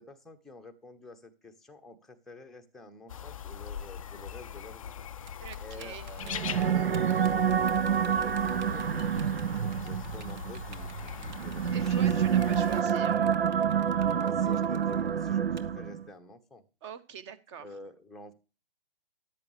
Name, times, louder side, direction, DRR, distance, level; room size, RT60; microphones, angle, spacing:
voice 1, 0.0-5.0 5.6-12.0 12.7-13.1 14.1-16.6 17.6-18.3, left 2 dB, ahead, 3 dB, 0.9 m, -49 dB
sound 1, 3.1-12.8, left 8 dB, 35° left, 0.4 m, -41 dB
Typing, 5.3-15.6, right 5 dB, 50° right, 1.4 m, -52 dB
voice 2, 5.4-6.1 11.7-13.3 16.8-17.7, right 7 dB, 30° right, 15 dB, 1.3 m, -44 dB
sound 2, 6.2-16.1, right 8 dB, 80° right, 0.5 m, -28 dB
13.5 x 10.5 x 3.2 m, 0.32 s
figure-of-eight pair, 130°, 30 cm